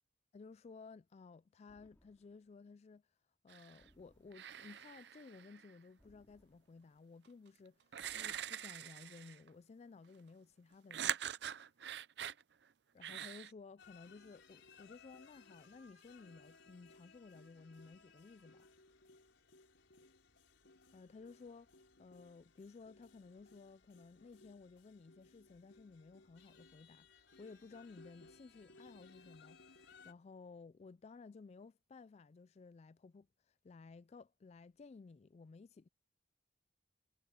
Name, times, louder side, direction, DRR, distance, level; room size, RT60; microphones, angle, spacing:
voice 1, 0.3-3.1 3.4-11.2 12.9-18.7 20.9-35.9, left 4 dB, 35° left, 0.3 m, -56 dB
sound 1, 1.7-2.6 3.8-4.8 6.0-7.0 8.0-8.9, equal, 15° left, 3.1 m, -71 dB
sound 2, 3.5-3.9 4.3-5.7 7.2-7.3 7.9-9.5 10.9-12.4 13.0-13.5, right 9 dB, 65° right, 0.5 m, -43 dB
sound 3, 13.8-30.1, left 4 dB, 85° left, 4.6 m, -63 dB
head